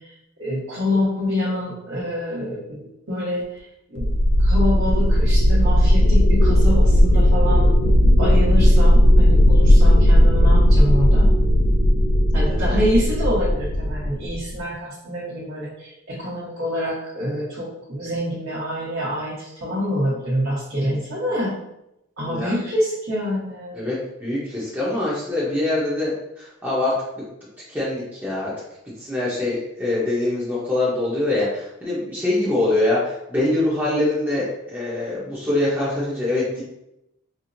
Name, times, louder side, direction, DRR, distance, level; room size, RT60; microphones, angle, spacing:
voice 1, 0.4-4.1 4.4-7.7 8.2-11.3 12.3-21.5 22.2-23.8, left 1 dB, 70° right, -9 dB, 1.1 m, -26 dB
sound 1, 4.0-14.6, equal, 55° left, 0.4 m, -15 dB
voice 2, 12.4-12.8 22.3-22.5 23.7-26.9 27.7-28.5 29.0-36.6, left 2 dB, 10° right, -8 dB, 0.7 m, -24 dB
4.3 x 2.0 x 2.6 m, 0.86 s
head